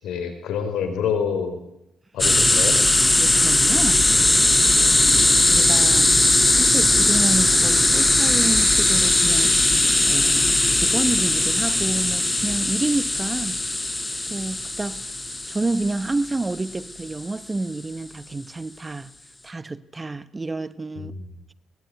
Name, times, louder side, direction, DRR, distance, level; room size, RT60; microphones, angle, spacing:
voice 1, 0.0-1.6 2.1-2.8 4.5-4.6 20.9-21.3, left 7 dB, 85° left, 4.7 m, -27 dB
sound 1, 2.2-16.7, left 2 dB, 15° left, 1.0 m, -19 dB
voice 2, 3.2-4.1 5.5-13.6 14.3-15.0 15.5-19.1 19.4-21.1, right 2 dB, 20° right, 1.0 m, -29 dB
22.5 x 20.0 x 9.4 m
cardioid pair, 110°, 0 cm